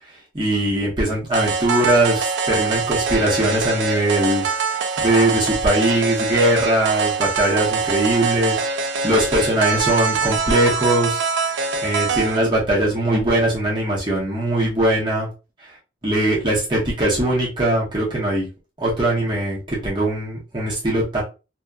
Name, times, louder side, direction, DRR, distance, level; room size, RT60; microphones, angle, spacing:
voice 1, 0.3-11.2 11.8-15.3 16.0-18.5 18.8-21.2, right 1 dB, 25° right, -7 dB, 0.8 m, -21 dB
sound 1, 1.3-12.4, right 4 dB, 75° right, 0.4 m, -23 dB
2.7 x 2.2 x 2.3 m, 0.30 s
head